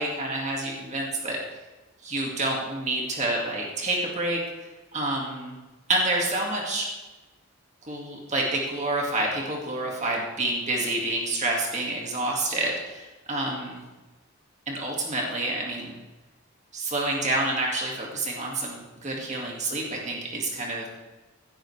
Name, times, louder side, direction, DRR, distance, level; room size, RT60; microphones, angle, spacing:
voice 1, 0.0-1.4 2.0-5.6 5.9-6.9 7.9-13.8 14.7-15.9 16.7-20.9, right 2 dB, 30° right, -1 dB, 2.0 m, -28 dB
16.5 x 10.5 x 3.3 m, 1.2 s
head